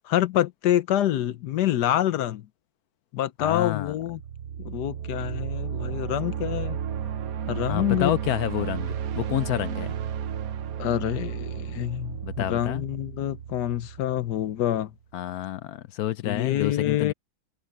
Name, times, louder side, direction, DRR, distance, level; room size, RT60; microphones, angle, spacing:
voice 1, 0.0-2.5 3.1-4.2 4.6-6.8 7.5-8.1 10.8-14.9 16.2-17.1, left 12 dB, 85° left, 1.4 m, -26 dB
voice 2, 3.4-4.0 7.7-9.9 12.2-12.8 15.1-17.1, left 13 dB, 70° left, 1.1 m, -29 dB
sound 1, 3.9-14.7, right 9 dB, 65° right, 1.2 m, -33 dB
open air
omnidirectional pair, 1.7 m